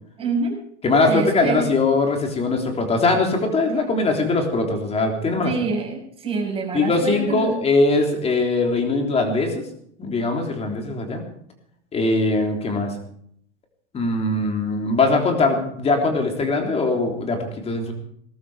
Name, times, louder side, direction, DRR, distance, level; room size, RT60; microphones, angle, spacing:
voice 1, 0.2-0.5 1.1-1.6 3.6-3.7 5.4-7.5, right 4 dB, 15° right, -1 dB, 6.4 m, -26 dB
voice 2, 0.8-5.5 6.7-9.7 10.0-11.2 11.9-12.9 13.9-17.9, left 3 dB, 15° left, 3 dB, 3.5 m, -21 dB
20.0 x 12.5 x 5.0 m, 0.67 s
supercardioid pair, 160°, 35 cm